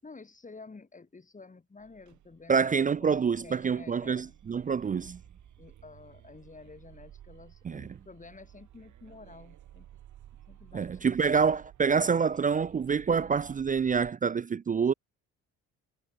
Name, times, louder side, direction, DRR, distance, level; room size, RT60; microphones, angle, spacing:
voice 1, 0.0-2.6 3.0-4.4 5.6-9.9 10.5-11.4, left 4 dB, 25° left, 5.2 m, -51 dB
sound 1, 1.8-14.1, right 12 dB, 75° right, 3.4 m, -54 dB
voice 2, 2.5-5.2 7.6-7.9 10.7-14.9, right 6 dB, 25° right, 0.5 m, -27 dB
cardioid pair, 90°, 30 cm